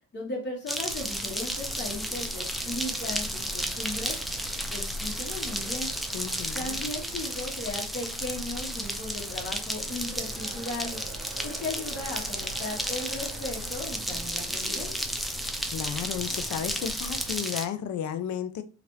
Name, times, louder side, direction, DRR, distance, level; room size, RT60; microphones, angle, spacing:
voice 1, 0.1-4.2 4.7-5.9 6.5-11.0 11.4-14.9, left 2 dB, 40° left, -1 dB, 1.1 m, -36 dB
sound 1, 0.7-17.7, equal, ahead, 0.4 m, -33 dB
sound 2, 0.9-17.4, equal, 55° right, 0.9 m, -42 dB
voice 2, 6.1-6.8 15.7-18.6, left 9 dB, 70° left, 10 dB, 0.5 m, -33 dB
3.1 x 2.5 x 3.0 m, 0.37 s
cardioid pair, 90°, 30 cm